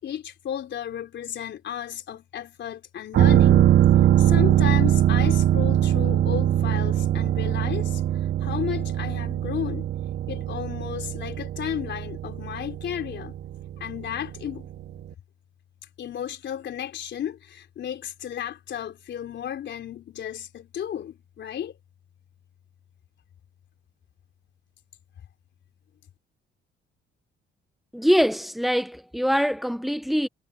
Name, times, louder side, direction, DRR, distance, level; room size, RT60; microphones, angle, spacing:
voice 1, 0.0-3.7 4.2-8.0 8.4-9.9 10.3-13.3 13.8-14.7 16.0-21.7, left 10 dB, 65° left, 4.1 m, -33 dB
sound 1, 3.1-14.7 15.0-15.1, right 11 dB, 60° right, 0.6 m, -22 dB
voice 2, 27.9-30.3, equal, ahead, 1.4 m, -23 dB
cardioid pair, 90°, 20 cm